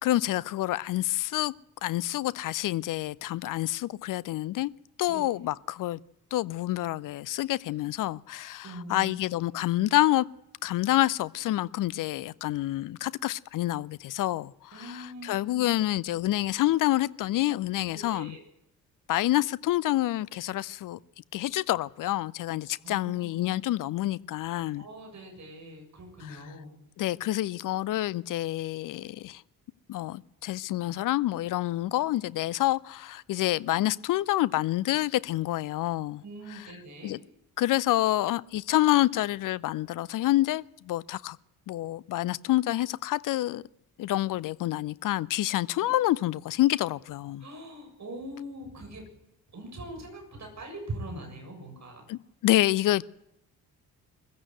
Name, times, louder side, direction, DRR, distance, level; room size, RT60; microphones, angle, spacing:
voice 1, 0.0-1.5 1.8-4.7 5.0-6.0 6.3-10.3 10.6-18.4 19.1-21.0 21.3-24.9 26.3-26.4 27.0-29.4 29.9-36.2 36.5-36.7 37.0-37.2 37.6-41.4 41.7-43.6 44.0-47.4 52.1-53.0, left 15 dB, 40° left, 0.7 m, -28 dB
voice 2, 8.6-9.2 14.7-15.7 17.9-18.4 22.8-23.6 24.7-26.7 36.2-37.2 45.8-45.9 47.4-49.1 49.5-52.1, right 1 dB, 35° right, 7.5 m, -42 dB
23.0 x 15.0 x 8.0 m
figure-of-eight pair, 45°, 48 cm